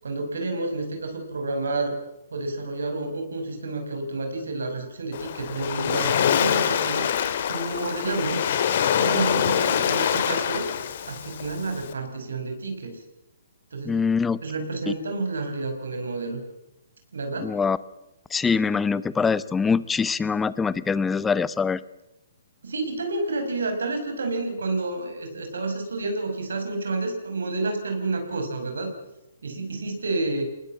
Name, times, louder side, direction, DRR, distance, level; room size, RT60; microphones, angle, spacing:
voice 1, 0.0-2.0 2.3-7.1 7.5-8.4 9.0-10.7 11.1-13.0 13.7-14.0 14.4-16.4 17.1-17.6 22.6-28.9 29.4-30.5, right 2 dB, 80° right, 6 dB, 5.5 m, -29 dB
Waves surf, 5.1-11.9, left 9 dB, 55° left, 2.1 m, -25 dB
voice 2, 13.8-14.4 17.4-17.8 18.3-21.8, left 5 dB, 10° left, 18 dB, 0.8 m, -23 dB
21.5 x 19.5 x 7.6 m, 0.90 s
hypercardioid pair, 140°, 0 cm